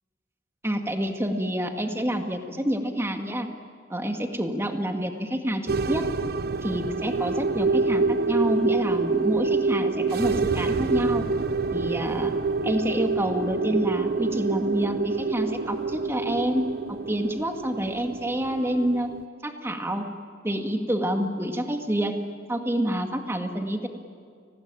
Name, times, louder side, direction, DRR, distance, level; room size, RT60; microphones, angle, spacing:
voice 1, 0.6-3.5 3.9-6.0 6.6-11.3 11.7-12.3 12.6-16.6 16.9-19.1 19.4-20.1 20.4-22.2 22.5-23.9, equal, 15° right, 5 dB, 2.1 m, -28 dB
sound 1, 5.7-19.2, right 3 dB, 60° right, 0.6 m, -26 dB
29.5 x 20.0 x 9.0 m, 2.2 s
head